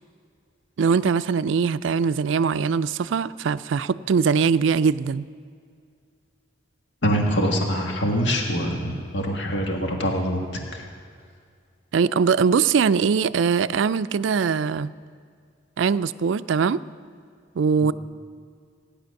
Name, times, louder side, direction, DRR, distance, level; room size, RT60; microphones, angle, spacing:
voice 1, 0.8-5.3 11.9-14.9 15.8-16.8 17.6-17.9, right 6 dB, 75° right, 15 dB, 0.4 m, -21 dB
voice 2, 7.0-10.4 10.7-10.8 17.8-17.9, equal, 65° left, 1 dB, 1.5 m, -24 dB
16.0 x 10.0 x 6.4 m, 2.2 s
head